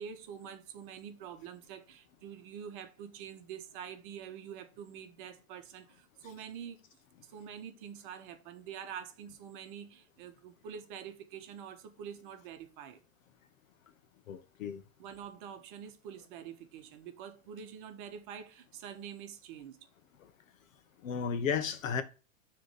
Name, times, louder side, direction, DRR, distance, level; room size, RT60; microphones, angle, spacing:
voice 1, 0.0-6.8 7.3-13.0 15.0-19.9, right 8 dB, 40° right, 1.2 m, -46 dB
voice 2, 14.3-14.8 21.0-22.0, left 6 dB, 70° left, 1.2 m, -33 dB
6.7 x 3.4 x 5.5 m
supercardioid pair, 155°, 41 cm